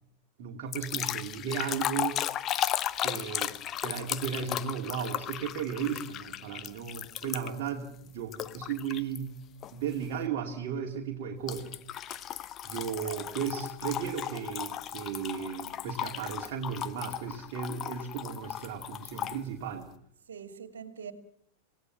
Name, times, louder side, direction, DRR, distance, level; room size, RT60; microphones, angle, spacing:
voice 1, 0.4-2.2 3.0-3.5 3.8-9.4 9.7-12.3 12.6-19.9, right 7 dB, 50° right, 2.4 m, -35 dB
sound 1, 0.7-7.7 8.3-9.2 9.6-9.9 11.5-19.4, left 11 dB, 30° left, 0.9 m, -35 dB
voice 2, 20.3-21.1, right 7 dB, 65° right, 2.5 m, -43 dB
27.5 x 17.5 x 7.3 m
figure-of-eight pair, 90°, 0 cm